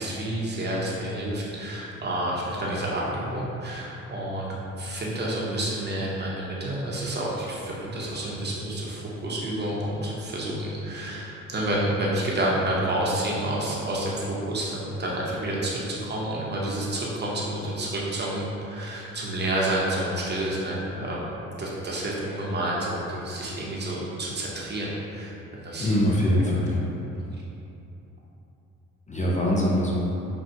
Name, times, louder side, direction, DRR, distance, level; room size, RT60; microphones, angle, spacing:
voice 1, 0.0-21.2 21.6-25.9 26.3-26.4, right 1 dB, 35° right, -5 dB, 0.9 m, -29 dB
voice 2, 25.8-26.8 29.1-30.0, equal, 25° left, -4 dB, 0.5 m, -23 dB
5.7 x 2.3 x 2.7 m, 2.9 s
cardioid pair, 90°, 30 cm